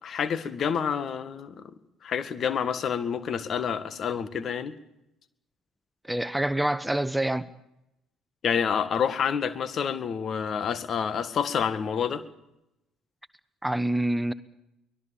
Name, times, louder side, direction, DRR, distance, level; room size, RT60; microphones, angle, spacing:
voice 1, 0.0-1.6 2.0-4.7 8.4-12.2, left 7 dB, 50° left, 1.9 m, -28 dB
voice 2, 6.1-7.5 13.6-14.3, right 1 dB, 5° right, 1.0 m, -26 dB
24.0 x 19.5 x 7.1 m
hypercardioid pair, 55°, 0 cm